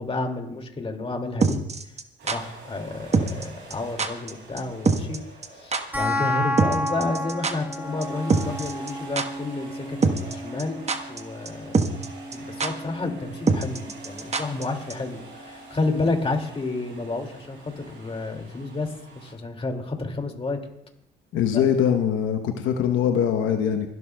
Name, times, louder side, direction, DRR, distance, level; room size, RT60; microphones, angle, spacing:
voice 1, 0.0-1.6 2.3-5.2 5.5-12.0 12.3-20.6 21.5-21.6, left 3 dB, 30° left, 3 dB, 2.3 m, -30 dB
sound 1, 1.4-2.4 3.1-3.5 3.7-3.8 4.0-4.3 4.6-4.7 4.9-5.2 5.4-5.5 5.7-5.8 6.6-7.8 8.0-8.1 8.3-8.9 9.2-9.3 10.0-10.3 10.6-11.2 11.5-11.6 11.7-12.1 12.3-12.4 12.6-12.7 13.5-14.6 14.9-15.0, right 4 dB, 35° right, 1.1 m, -23 dB
sound 2, 2.2-19.3, right 2 dB, 75° right, 6.7 m, -46 dB
sound 3, 5.9-16.9, equal, 10° right, 3.1 m, -33 dB
voice 2, 21.3-23.9, left 8 dB, 85° left, 6 dB, 1.0 m, -22 dB
27.0 x 12.0 x 2.3 m, 0.78 s
cardioid pair, 90°, 20 cm